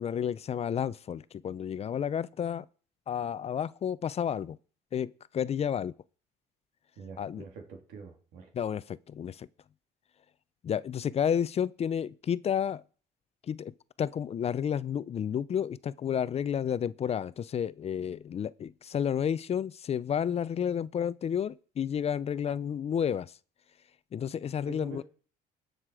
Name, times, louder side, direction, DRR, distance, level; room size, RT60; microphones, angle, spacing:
voice 1, 0.0-2.7 3.1-4.6 4.9-5.9 7.2-7.4 8.5-9.5 10.6-12.8 13.5-13.7 14.0-23.3 24.1-25.0, left 8 dB, 40° left, 0.5 m, -31 dB
voice 2, 7.0-8.5 24.7-25.0, right 5 dB, 85° right, 3.2 m, -46 dB
19.0 x 6.6 x 4.8 m
cardioid pair, 110°, 17 cm